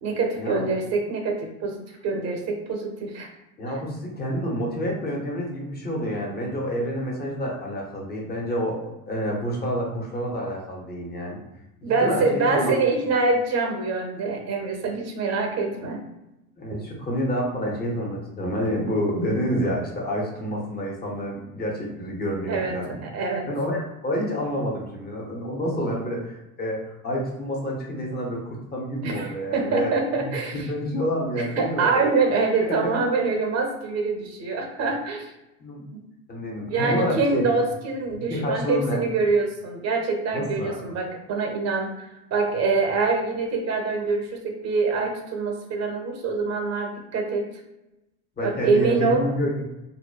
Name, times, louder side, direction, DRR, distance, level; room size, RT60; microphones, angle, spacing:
voice 1, 0.0-3.3 3.7-3.8 11.8-16.0 16.7-16.8 22.5-22.8 23.0-23.5 29.0-30.7 31.4-35.3 35.9-36.0 36.7-47.5 48.4-49.3, right 3 dB, 35° right, 3 dB, 0.6 m, -25 dB
voice 2, 3.6-11.4 11.9-12.7 16.6-23.0 23.5-32.3 32.6-32.9 35.6-35.8 36.3-37.5 38.1-39.0 40.3-40.8 48.4-49.6, equal, 20° left, -1 dB, 0.8 m, -28 dB
2.8 x 2.1 x 2.2 m, 0.94 s
hypercardioid pair, 90°, 45 cm